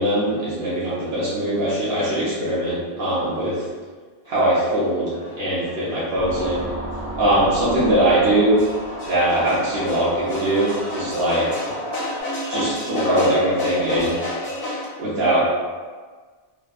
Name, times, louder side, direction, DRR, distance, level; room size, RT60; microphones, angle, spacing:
voice 1, 0.0-3.6 4.3-6.7 7.1-8.6 9.1-11.5 12.5-14.2 15.0-15.5, right 1 dB, 70° right, -9 dB, 0.9 m, -21 dB
sound 1, 4.3-14.9, left 1 dB, 90° left, 1.0 m, -32 dB
sound 2, 6.2-12.2, right 1 dB, 45° right, 0.5 m, -34 dB
3.0 x 2.1 x 2.3 m, 1.5 s
omnidirectional pair, 1.1 m